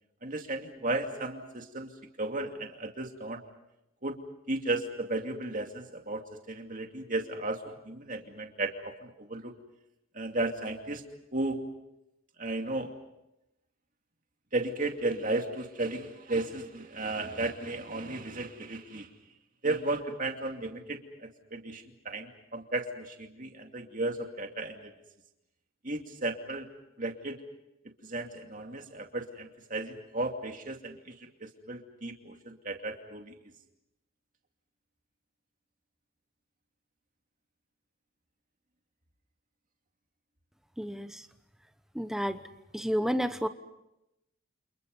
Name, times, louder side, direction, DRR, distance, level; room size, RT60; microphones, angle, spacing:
voice 1, 0.2-1.9 2.2-3.4 4.0-4.2 4.5-9.5 10.1-11.0 11.3-11.6 12.4-12.9 14.5-19.1 19.6-24.9 25.8-26.7 27.0-27.4 28.0-31.1 31.4-33.3, right 2 dB, 35° right, 4 dB, 2.5 m, -34 dB
voice 2, 40.8-41.3 41.9-42.4 42.7-43.5, equal, ahead, 10 dB, 1.0 m, -30 dB
29.5 x 28.0 x 5.5 m, 0.89 s
head